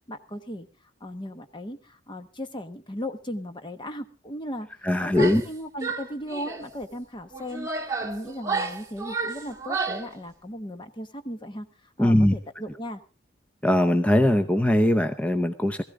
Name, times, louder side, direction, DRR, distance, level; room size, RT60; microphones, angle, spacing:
voice 1, 0.1-0.7 1.0-4.7 5.0-11.7 12.0-13.0, equal, 25° left, 8 dB, 1.1 m, -36 dB
voice 2, 4.8-5.4 12.0-12.3 13.6-15.8, left 1 dB, 5° left, 8 dB, 0.7 m, -21 dB
Female speech woman speaking / Yell, 5.1-5.5 5.8-6.7 7.3-10.1, right 4 dB, 15° right, 1.7 m, -31 dB
18.5 x 15.0 x 3.6 m, 0.32 s
head